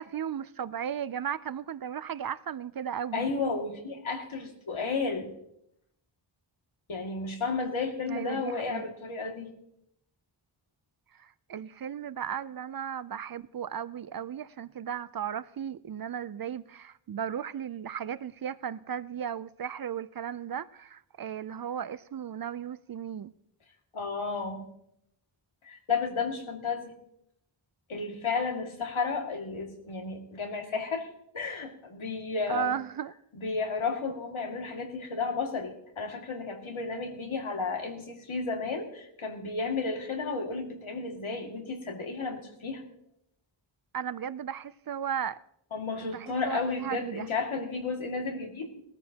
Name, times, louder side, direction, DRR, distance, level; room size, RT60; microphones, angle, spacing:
voice 1, 0.0-3.3 8.1-8.9 11.2-23.3 32.5-33.1 43.9-45.4 46.0-47.3, right 8 dB, 50° right, 0.5 m, -35 dB
voice 2, 3.1-5.3 6.9-9.5 23.9-24.7 25.6-26.9 27.9-31.1 31.3-32.8 33.3-42.8 45.7-48.8, left 4 dB, 80° left, 2.3 m, -33 dB
19.5 x 13.5 x 2.9 m
wide cardioid pair, 115°, 47 cm